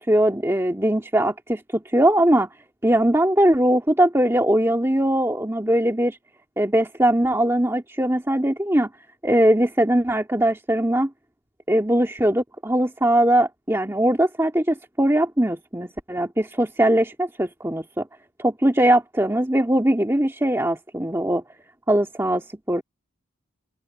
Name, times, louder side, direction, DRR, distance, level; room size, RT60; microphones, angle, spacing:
voice 1, 0.1-2.5 2.8-6.2 6.6-8.9 9.2-11.1 11.7-18.0 18.4-21.4 21.9-22.8, right 1 dB, 10° right, 2.1 m, -20 dB
open air
head